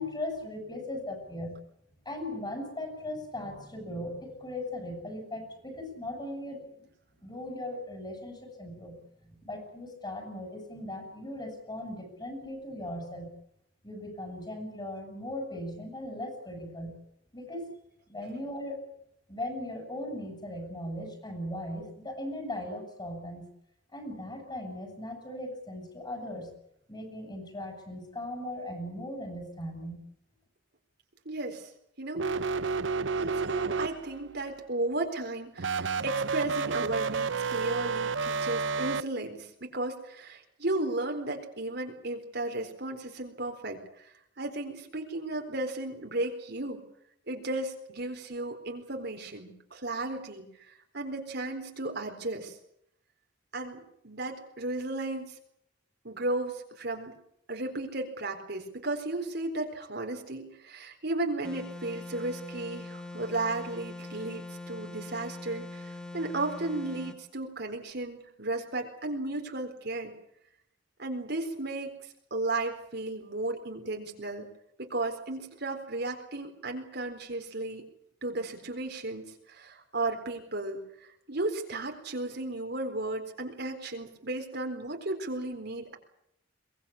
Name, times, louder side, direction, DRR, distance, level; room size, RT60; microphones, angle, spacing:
voice 1, 0.0-1.6 2.1-6.7 7.2-9.0 9.2-13.3 13.8-17.0 17.3-17.7 18.1-18.8 19.3-23.5 23.9-26.5 26.9-30.0, left 1 dB, 25° left, 5 dB, 7.2 m, -38 dB
voice 2, 31.3-31.7 32.0-32.3 33.2-44.1 44.4-46.8 47.3-52.6 53.5-55.3 56.0-57.2 57.5-70.1 71.0-72.0 72.3-74.5 74.8-77.9 78.2-80.8 81.3-86.0, right 2 dB, 60° right, 4 dB, 4.1 m, -34 dB
sound 1, 32.1-34.3 35.6-39.0, right 4 dB, 85° right, 0.9 m, -30 dB
sound 2, 61.4-67.2, left 2 dB, 5° left, 1.9 m, -42 dB
23.5 x 19.5 x 8.5 m, 0.73 s
head